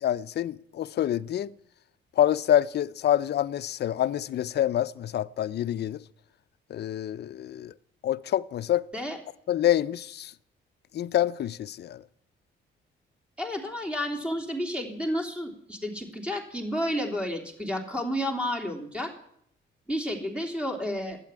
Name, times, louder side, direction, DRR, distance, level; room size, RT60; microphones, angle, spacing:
voice 1, 0.0-1.5 2.2-6.0 6.7-7.7 8.0-8.8 9.5-10.3 10.9-12.0, left 11 dB, 55° left, 0.6 m, -26 dB
voice 2, 13.4-19.1 19.9-21.2, equal, 5° right, 3.3 m, -31 dB
12.0 x 9.1 x 9.8 m
cardioid pair, 90°, 20 cm